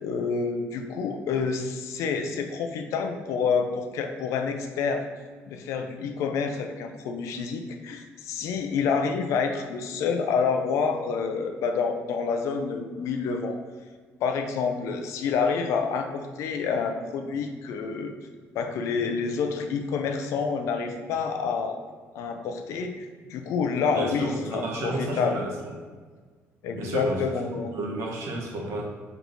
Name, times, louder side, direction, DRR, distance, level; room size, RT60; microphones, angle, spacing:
voice 1, 0.0-5.0 5.5-13.6 14.2-18.1 18.5-21.8 22.1-25.4 26.6-27.8, left 5 dB, 80° left, 5 dB, 0.4 m, -28 dB
voice 2, 23.9-25.7 26.7-27.2 27.7-28.8, right 1 dB, 70° right, -1 dB, 0.9 m, -31 dB
3.4 x 3.0 x 3.9 m, 1.5 s
cardioid pair, 165°, 5 cm